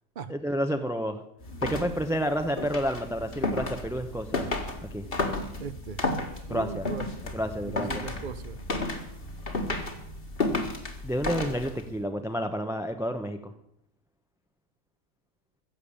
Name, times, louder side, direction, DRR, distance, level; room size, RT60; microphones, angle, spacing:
voice 1, 0.3-1.2 1.6-4.5 4.9-5.1 6.5-6.9 7.3-8.0 11.0-13.5, equal, 5° right, 6 dB, 0.6 m, -30 dB
sound 1, 1.4-11.9, left 2 dB, 40° left, 1.9 m, -33 dB
voice 2, 5.6-6.0 6.5-7.3 7.6-8.6, right 6 dB, 50° right, 15 dB, 0.6 m, -38 dB
15.0 x 7.2 x 8.6 m, 0.75 s
omnidirectional pair, 1.4 m